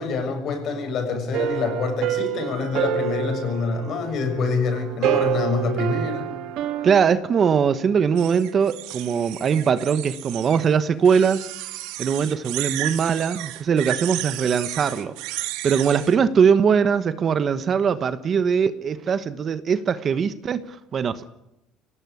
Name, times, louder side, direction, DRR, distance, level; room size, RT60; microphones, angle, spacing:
voice 1, 0.0-6.4, left 4 dB, 45° left, 6 dB, 6.9 m, -26 dB
sound 1, 1.3-7.1, right 10 dB, 60° right, 1.9 m, -27 dB
voice 2, 6.8-11.5 12.0-15.1 15.6-21.3, right 6 dB, 35° right, 13 dB, 1.2 m, -21 dB
sound 2, 8.2-10.7 11.0-16.2, right 16 dB, 85° right, 2.1 m, -33 dB
24.0 x 18.0 x 9.8 m, 0.90 s
cardioid pair, 140°, 0 cm